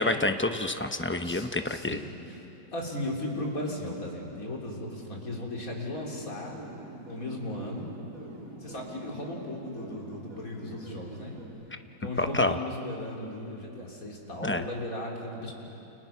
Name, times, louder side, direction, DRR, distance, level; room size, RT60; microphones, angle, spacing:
voice 1, 0.0-2.0 12.2-12.6 14.4-14.6, left 2 dB, 15° left, 7 dB, 0.5 m, -27 dB
voice 2, 1.2-6.6 7.1-7.9 8.6-11.4 12.0-15.5, left 1 dB, 60° left, -1 dB, 4.0 m, -36 dB
sound 1, 5.9-11.5, right 2 dB, 60° right, 3.9 m, -45 dB
29.5 x 29.0 x 5.9 m, 3.0 s
omnidirectional pair, 1.7 m